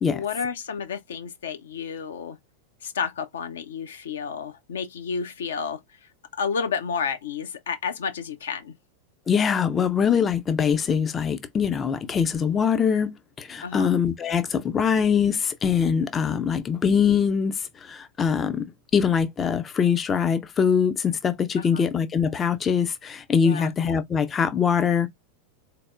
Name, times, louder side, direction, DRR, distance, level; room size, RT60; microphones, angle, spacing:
voice 1, 0.1-2.4 2.8-5.8 6.4-8.8 13.6-13.9 21.6-21.8 23.4-23.7, left 6 dB, 65° left, 0.6 m, -31 dB
voice 2, 9.3-25.1, left 7 dB, 20° left, 0.5 m, -23 dB
4.1 x 3.3 x 2.3 m
figure-of-eight pair, 90°, 0 cm